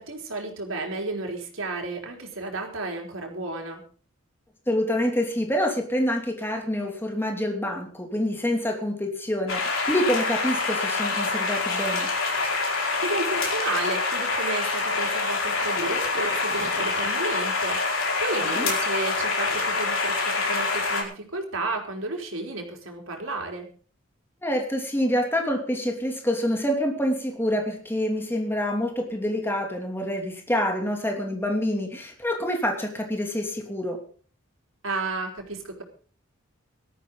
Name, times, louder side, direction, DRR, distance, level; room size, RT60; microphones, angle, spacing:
voice 1, 0.0-3.8 13.0-17.8 18.2-23.7 34.8-35.8, right 2 dB, 80° right, 1 dB, 4.2 m, -32 dB
voice 2, 4.7-12.1 18.4-18.7 24.4-34.0, equal, 10° left, 2 dB, 2.8 m, -27 dB
sound 1, 9.5-21.0, left 3 dB, 80° left, 5.0 m, -26 dB
18.0 x 13.5 x 4.0 m, 0.42 s
head